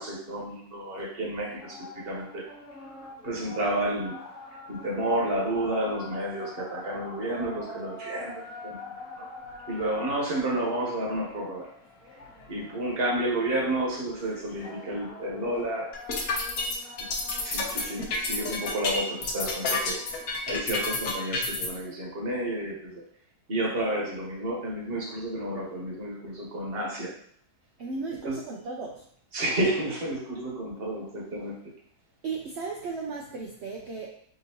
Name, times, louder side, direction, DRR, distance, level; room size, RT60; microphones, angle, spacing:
voice 1, 0.0-2.4 3.2-4.2 4.7-9.3 9.7-11.7 12.5-15.9 17.4-23.0 23.5-27.1 28.2-28.4 29.3-31.6, right 1 dB, 45° right, -3 dB, 1.2 m, -31 dB
sound 1, 1.4-20.6, left 2 dB, 30° left, 0.9 m, -45 dB
sound 2, 15.9-21.7, left 3 dB, 70° left, 1.2 m, -29 dB
voice 2, 27.8-29.0 32.2-34.1, right 4 dB, 65° right, -1 dB, 0.7 m, -35 dB
5.0 x 2.7 x 2.8 m, 0.62 s
omnidirectional pair, 1.6 m